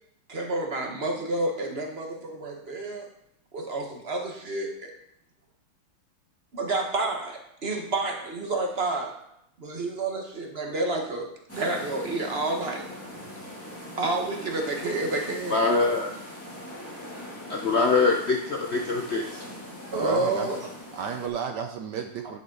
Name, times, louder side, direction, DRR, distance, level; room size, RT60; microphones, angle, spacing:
voice 1, 0.3-3.1 3.5-4.9 6.5-9.1 9.6-12.8 14.0-15.6 19.9-20.7, right 2 dB, 35° right, 2 dB, 1.4 m, -29 dB
sound 1, 11.5-21.3, left 1 dB, 5° left, 2.4 m, -41 dB
voice 2, 15.5-16.1 17.5-19.2, left 3 dB, 90° left, 1 dB, 0.5 m, -23 dB
voice 3, 19.9-20.5 20.9-22.4, right 7 dB, 70° right, 6 dB, 1.1 m, -33 dB
10.0 x 8.2 x 4.0 m, 0.75 s
omnidirectional pair, 2.4 m